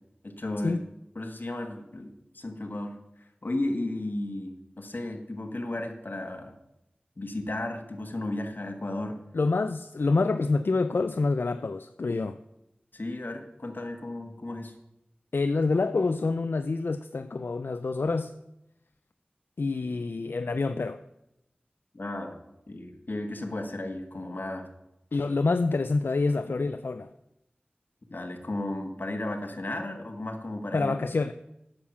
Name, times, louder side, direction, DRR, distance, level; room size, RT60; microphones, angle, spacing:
voice 1, 0.2-0.8 1.1-2.9 3.4-6.5 7.2-9.2 12.9-14.7 21.9-22.4 22.7-24.7 28.1-30.9, left 1 dB, 60° left, 1.5 m, -34 dB
voice 2, 9.3-12.4 15.3-18.3 19.6-21.0 25.1-27.1 30.7-31.3, left 3 dB, 80° left, 0.4 m, -27 dB
9.5 x 7.2 x 7.2 m
wide cardioid pair, 50°, 4 cm